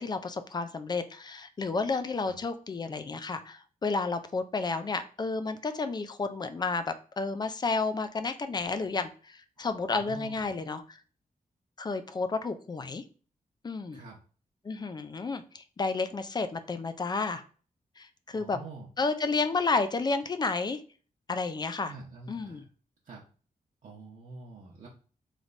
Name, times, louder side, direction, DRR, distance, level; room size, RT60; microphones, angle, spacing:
voice 1, 0.0-11.0 11.8-13.0 13.6-14.0 14.6-17.4 18.0-18.6 19.0-20.8 21.3-21.9 22.3-22.6, left 4 dB, 30° left, 10 dB, 0.4 m, -31 dB
voice 2, 9.9-10.5 13.9-14.2 18.3-18.9 21.9-22.6 23.0-23.2 23.8-24.9, right 3 dB, 55° right, -4 dB, 0.8 m, -46 dB
3.2 x 3.1 x 3.9 m, 0.39 s
wide cardioid pair, 155°, 15 cm